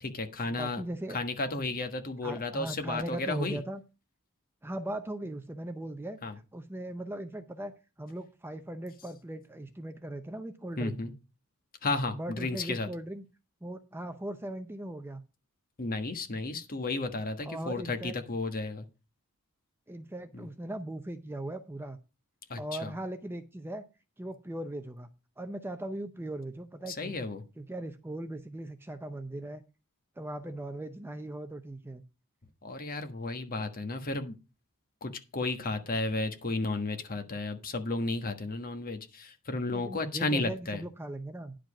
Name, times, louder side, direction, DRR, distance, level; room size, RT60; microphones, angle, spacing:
voice 1, 0.0-0.8 1.1-3.6 6.2-6.3 10.8-11.1 11.8-12.9 15.8-18.8 20.3-20.5 22.5-22.9 26.9-27.4 32.6-34.3 35.0-40.8, left 2 dB, 40° left, 7 dB, 1.3 m, -33 dB
voice 2, 0.6-1.2 2.2-3.8 4.6-6.2 6.5-11.0 12.1-13.2 13.6-15.2 17.4-18.1 19.9-22.0 22.6-23.8 24.2-25.1 25.4-27.1 27.6-29.6 30.2-32.0 39.7-41.6, right 1 dB, 10° right, 9 dB, 0.6 m, -39 dB
10.5 x 5.1 x 5.9 m, 0.30 s
head